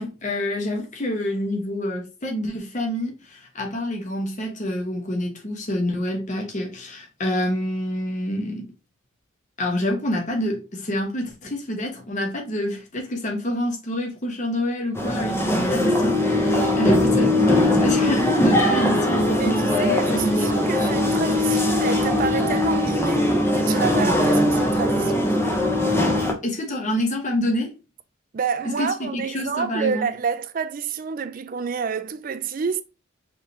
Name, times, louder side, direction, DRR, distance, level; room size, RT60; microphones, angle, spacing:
voice 1, 0.0-8.7 9.6-20.6 26.4-27.7 28.6-30.1, left 1 dB, 35° left, 1.0 m, -27 dB
sound 1, 14.9-26.3, left 1 dB, 10° left, 0.7 m, -20 dB
voice 2, 19.4-25.3 28.3-32.8, right 6 dB, 40° right, 0.3 m, -28 dB
4.7 x 3.3 x 2.8 m
head